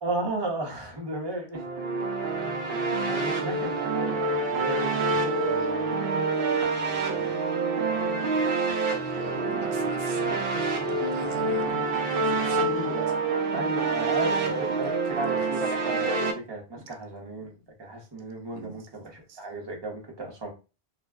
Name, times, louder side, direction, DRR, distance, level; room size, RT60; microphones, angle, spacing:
voice 1, 0.0-1.7 2.7-4.2 4.5-5.0 5.4-6.1 7.1-7.3 7.9-9.7 12.6-13.1 13.5-20.5, right 2 dB, 25° right, 0.8 m, -35 dB
sound 1, 1.5-16.3, right 3 dB, 65° right, 0.7 m, -27 dB
voice 2, 9.2-13.1 15.1-15.4 15.7-15.8 16.8-16.9 18.5-18.9 19.3-19.5, right 7 dB, 90° right, 0.9 m, -43 dB
2.4 x 2.2 x 3.4 m
omnidirectional pair, 1.1 m